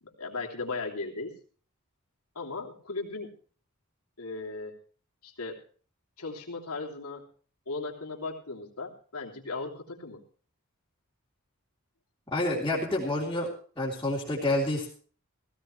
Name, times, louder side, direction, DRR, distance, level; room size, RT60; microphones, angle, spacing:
voice 1, 0.0-1.4 2.3-3.3 4.2-4.8 5.2-5.6 6.2-7.3 7.7-10.2, left 3 dB, 80° left, 1 dB, 3.1 m, -37 dB
voice 2, 12.3-13.5 13.8-14.9, left 1 dB, 15° left, -7 dB, 3.5 m, -28 dB
16.5 x 16.0 x 3.2 m, 0.42 s
head